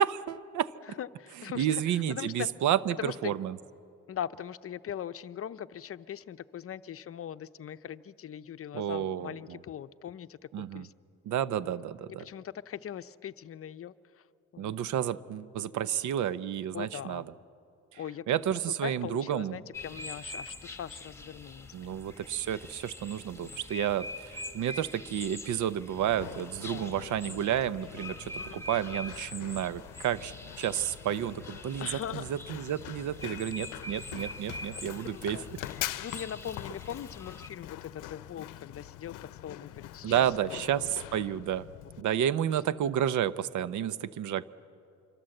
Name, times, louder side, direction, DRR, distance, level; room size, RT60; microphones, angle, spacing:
voice 1, 0.0-0.7 1.6-3.6 8.7-9.3 10.5-10.9 11.3-12.2 14.6-17.2 18.3-19.5 21.7-31.9 32.1-35.4 40.0-40.9 41.1-41.7 42.0-44.5, right 10 dB, 75° right, 16 dB, 0.8 m, -31 dB
voice 2, 0.9-2.5 3.0-3.3 4.1-10.9 11.6-11.7 12.2-14.3 14.5-14.8 16.7-17.3 18.0-18.4 18.8-22.1 23.4-23.6 26.7-26.9 27.2-27.5 28.4-28.6 31.8-32.3 34.7-35.5 36.0-40.8 42.3-42.6, left 9 dB, 50° left, 13 dB, 0.7 m, -41 dB
sound 1, 19.7-37.5, left 2 dB, 10° left, 1.7 m, -45 dB
Run, 26.0-42.0, left 15 dB, 90° left, 0.7 m, -44 dB
25.5 x 24.0 x 7.8 m, 2.5 s
cardioid pair, 90°, 30 cm